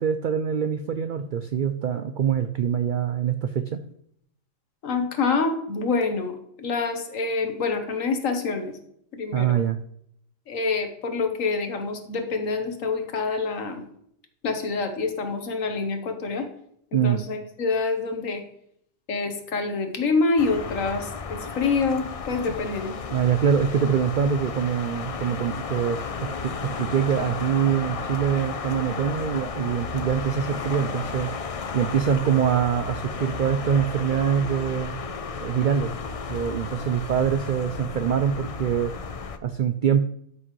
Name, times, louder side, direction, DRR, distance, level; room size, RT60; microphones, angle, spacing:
voice 1, 0.0-3.8 9.3-9.8 16.9-17.2 23.1-31.3 31.7-34.9 35.4-35.9 36.3-38.9 39.4-40.1, right 8 dB, 80° right, 9 dB, 0.4 m, -24 dB
voice 2, 4.8-8.7 9.1-9.6 10.5-13.8 14.4-16.5 16.9-18.4 19.1-22.9, left 4 dB, 75° left, 6 dB, 1.6 m, -26 dB
sound 1, 20.4-39.4, left 5 dB, 55° left, 0.4 m, -33 dB
12.5 x 6.2 x 3.1 m, 0.71 s
omnidirectional pair, 1.4 m